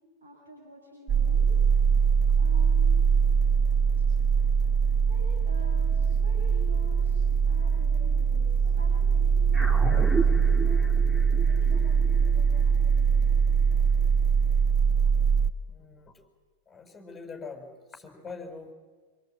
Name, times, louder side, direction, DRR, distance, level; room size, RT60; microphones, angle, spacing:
voice 1, 0.2-1.6 2.4-3.1 4.0-4.3 5.1-7.2 7.5-13.4, right 2 dB, 70° right, -1 dB, 7.5 m, -47 dB
sound 1, 1.1-15.5, right 6 dB, 25° right, 1.7 m, -22 dB
sound 2, 9.5-14.2, right 1 dB, 5° right, 2.4 m, -35 dB
voice 2, 15.7-16.1 16.7-18.7, left 4 dB, 15° left, 4 dB, 5.5 m, -43 dB
26.5 x 25.5 x 8.7 m, 1.4 s
figure-of-eight pair, 90°, 0 cm